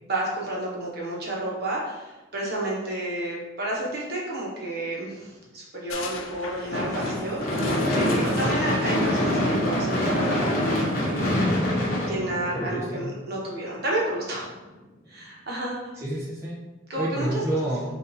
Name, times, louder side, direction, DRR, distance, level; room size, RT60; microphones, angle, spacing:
voice 1, 0.0-11.5 12.0-14.5 15.1-15.9 16.9-17.4, right 1 dB, 50° right, -4 dB, 1.1 m, -31 dB
sound 1, 5.9-11.3, left 5 dB, 80° left, 0.4 m, -41 dB
Gunshot gunfire / Fireworks, 6.7-13.0, left 1 dB, 45° left, 1.0 m, -25 dB
voice 2, 8.2-8.5 12.5-13.1 15.9-16.5 17.0-17.8, right 1 dB, 15° right, -7 dB, 0.7 m, -29 dB
5.6 x 2.7 x 2.7 m, 1.1 s
head